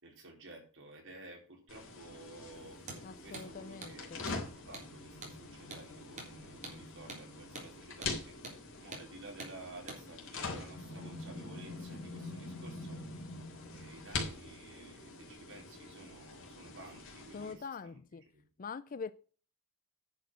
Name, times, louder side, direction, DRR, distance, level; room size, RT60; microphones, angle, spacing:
voice 1, 0.0-13.0 13.7-18.0 18.3-18.4, right 2 dB, 60° right, 4.3 m, -53 dB
sound 1, 1.7-17.5, left 3 dB, 60° left, 3.5 m, -44 dB
Hammer, 2.8-3.0 3.3-3.5 3.8-4.0 4.3-4.4 4.7-4.9 5.2-5.4 5.7-5.9 6.2-6.3 6.6-6.8 7.1-7.2 7.5-7.7 8.0-8.2 8.4-8.6 8.9-9.1 9.4-9.5 9.9-10.0, right 3 dB, 35° right, 3.6 m, -45 dB
voice 2, 3.0-4.3 17.3-18.2 18.6-19.1, left 5 dB, 40° left, 0.4 m, -44 dB
10.0 x 6.5 x 6.3 m
head